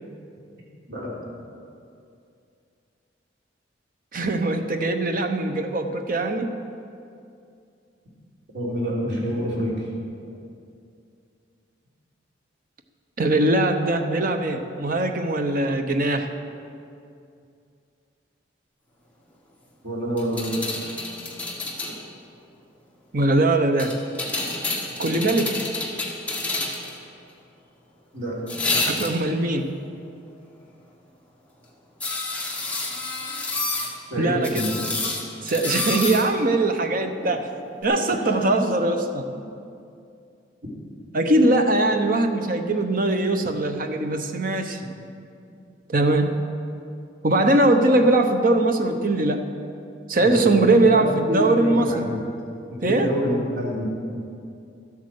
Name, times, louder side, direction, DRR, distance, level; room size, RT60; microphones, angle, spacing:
voice 1, 4.1-6.5 13.2-16.3 23.1-23.9 25.0-25.6 28.8-29.7 34.2-34.6 35.4-37.5 37.8-39.3 41.1-44.8 45.9-46.5 47.2-49.5 50.1-52.1 52.8-53.1, right 2 dB, 50° right, 6 dB, 0.9 m, -21 dB
voice 2, 8.5-9.9 19.8-20.6 28.1-28.4 34.1-34.9 38.2-38.3 41.5-41.7 50.2-52.2 52.7-54.2, equal, 70° right, -5 dB, 3.6 m, -27 dB
sound 1, 20.2-22.0 23.8-27.0 28.5-29.4 32.0-33.9 34.4-36.2 37.8-37.9, left 2 dB, 10° left, 1.5 m, -29 dB
12.5 x 8.5 x 6.5 m, 2.5 s
head